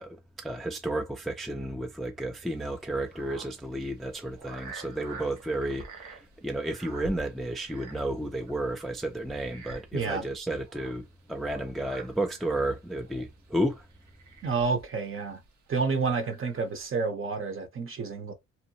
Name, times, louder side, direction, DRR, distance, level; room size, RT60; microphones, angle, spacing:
voice 1, 0.0-13.8, right 1 dB, ahead, 0.4 m, -32 dB
sound 1, 2.4-16.9, right 3 dB, 70° right, 0.9 m, -49 dB
voice 2, 9.9-10.2 14.4-15.4 15.7-18.3, right 4 dB, 45° right, 0.8 m, -29 dB
2.8 x 2.1 x 2.7 m
cardioid pair, 90°, 30 cm